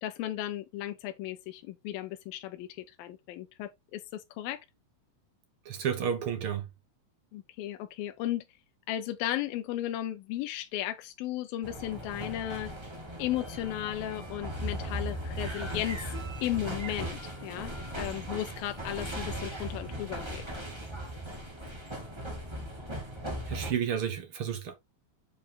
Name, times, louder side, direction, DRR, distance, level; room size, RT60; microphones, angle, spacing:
voice 1, 0.0-4.6 7.3-8.4 8.9-12.7 13.2-16.1 16.4-20.4, left 13 dB, 85° left, 2.5 m, -35 dB
voice 2, 5.6-6.7 23.5-24.8, right 8 dB, 70° right, 1.3 m, -31 dB
sound 1, 11.6-23.7, right 1 dB, 20° right, 0.8 m, -38 dB
7.7 x 5.3 x 3.6 m
omnidirectional pair, 4.1 m